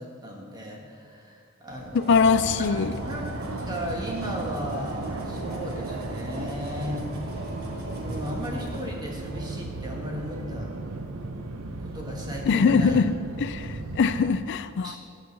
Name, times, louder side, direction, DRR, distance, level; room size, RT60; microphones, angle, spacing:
voice 1, 0.0-2.7 3.0-3.3 3.7-7.1 8.0-10.7 11.8-13.0 14.8-15.0, equal, 20° right, -1 dB, 1.3 m, -35 dB
sound 1, 1.7-9.7, right 1 dB, 45° right, 1.3 m, -38 dB
voice 2, 1.9-2.9 12.5-13.1 13.4-15.0, left 5 dB, 55° left, 13 dB, 0.4 m, -22 dB
Fixed-wing aircraft airplane, 2.4-14.4, right 2 dB, 75° right, 0.6 m, -36 dB
11.0 x 3.8 x 7.2 m, 2.3 s
head